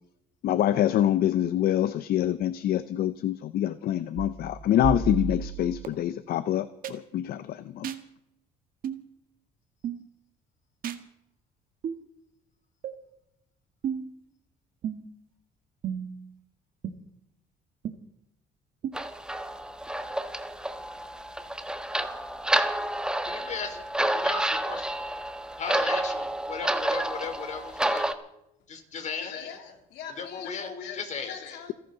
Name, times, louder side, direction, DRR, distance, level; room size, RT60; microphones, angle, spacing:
voice 1, 0.4-7.9, left 11 dB, 65° left, 14 dB, 0.7 m, -26 dB
sound 1, 4.2-5.9 6.8-6.9 7.8-8.0 8.8-9.0 9.8-10.0 10.8-11.0 11.8-12.0 12.8-12.9 13.8-14.1 14.8-15.2 15.8-16.2 16.8-16.9 17.8-17.9 18.8-18.9, right 7 dB, 55° right, 1.7 m, -33 dB
sound 2, 18.9-28.1, right 1 dB, 5° right, 1.3 m, -29 dB
voice 2, 23.2-23.8 24.1-24.9 25.6-28.1 28.7-29.3 30.2-31.4, left 5 dB, 45° left, 6 dB, 3.5 m, -36 dB
voice 3, 28.9-31.7, left 7 dB, 85° left, 4 dB, 2.9 m, -41 dB
30.0 x 11.5 x 4.0 m, 0.83 s
cardioid pair, 110°, 17 cm